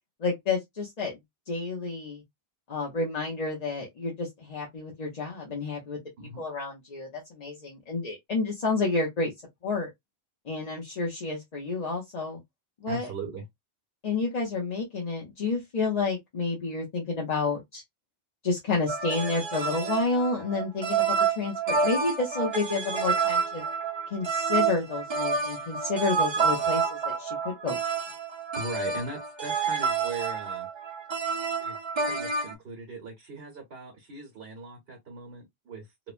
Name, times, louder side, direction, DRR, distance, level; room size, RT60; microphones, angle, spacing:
voice 1, 0.2-1.2 1.5-2.2 2.7-6.0 6.4-9.3 9.6-9.9 10.5-12.4 12.8-13.1 14.0-17.8 18.4-23.6 24.1-27.8, left 3 dB, 45° left, 0.7 m, -30 dB
voice 2, 12.9-13.4 28.6-30.7 31.6-31.8 32.0-35.9, right 3 dB, 70° right, 1.1 m, -39 dB
sound 1, 18.9-32.5, right 5 dB, 40° right, 0.4 m, -29 dB
3.0 x 2.1 x 2.4 m
omnidirectional pair, 1.0 m